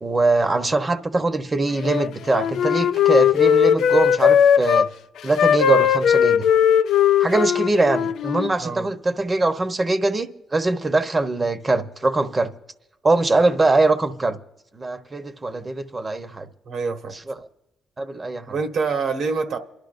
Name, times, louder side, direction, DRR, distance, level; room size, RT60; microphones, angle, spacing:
voice 1, 0.0-4.9 5.2-6.4 7.2-12.5 13.0-14.4 14.7-16.5 17.3-17.4 18.0-18.6, right 2 dB, 25° right, 1.0 m, -22 dB
Wind instrument woodwind instrument, 1.7-4.9 5.3-8.5, left 8 dB, 75° left, 0.4 m, -18 dB
voice 2, 16.6-17.2 18.5-19.6, right 4 dB, 65° right, 1.4 m, -26 dB
27.5 x 12.0 x 2.6 m
cardioid pair, 90°, 0 cm